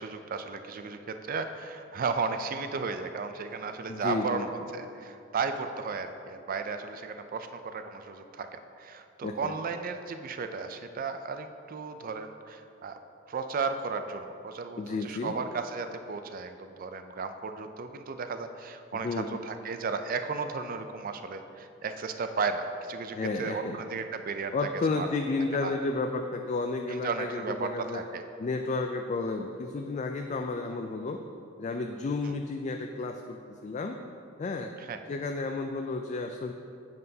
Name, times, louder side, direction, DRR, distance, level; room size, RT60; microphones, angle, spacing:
voice 1, 0.0-13.0 13.3-24.5 25.0-25.1 25.6-25.8 26.9-28.2 32.2-32.3 34.8-35.0, right 4 dB, 45° right, 8 dB, 0.4 m, -34 dB
voice 2, 3.9-4.5 9.2-9.5 14.8-15.3 19.0-19.4 23.1-23.8 24.5-28.0 28.4-31.2 31.6-34.0 34.4-34.7 35.1-36.5, left 3 dB, 35° left, 5 dB, 0.3 m, -32 dB
9.2 x 7.7 x 2.8 m, 2.6 s
head